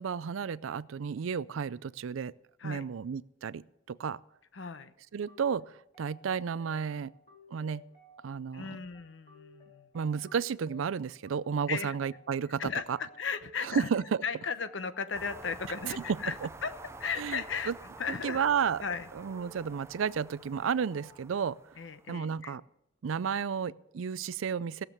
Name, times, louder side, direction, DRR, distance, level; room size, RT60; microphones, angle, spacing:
voice 1, 0.0-2.3 2.6-4.2 5.1-7.1 7.5-7.8 8.2-8.8 9.9-12.6 12.9-13.0 13.6-14.0 16.4-16.5 17.2-17.7 18.2-18.8 19.1-21.6 22.1-22.6 23.0-24.8, right 6 dB, 85° right, 19 dB, 0.4 m, -32 dB
voice 2, 4.5-4.9 8.5-9.9 11.7-12.0 12.6-13.9 14.2-16.4 16.6-16.7 17.0-17.7 18.0-18.4 18.8-19.1 21.8-22.6, left 5 dB, 70° left, 12 dB, 0.8 m, -36 dB
sound 1, 5.3-21.3, left 2 dB, 35° left, 3.2 m, -57 dB
sound 2, 15.1-22.1, right 2 dB, 15° right, 0.4 m, -49 dB
17.5 x 7.4 x 6.6 m, 0.81 s
head